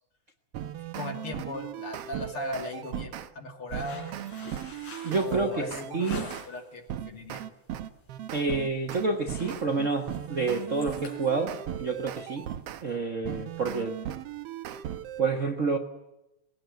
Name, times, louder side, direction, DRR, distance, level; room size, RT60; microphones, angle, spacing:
sound 1, 0.5-3.3 3.7-6.5 6.9-12.8 13.2-15.2, right 11 dB, 65° right, 1.6 m, -37 dB
voice 1, 0.9-4.2 5.1-6.1 6.5-7.4, left 2 dB, 45° left, 3 dB, 3.2 m, -38 dB
sound 2, 3.7-6.7 7.1-7.5 7.8-8.1 8.4-8.8 9.0-13.0, left 2 dB, 70° left, 5.7 m, -46 dB
voice 2, 5.0-6.3 8.3-12.5 12.8-14.0 15.2-15.8, right 4 dB, 85° right, 3 dB, 0.6 m, -29 dB
20.0 x 16.5 x 9.2 m, 0.91 s
omnidirectional pair, 3.5 m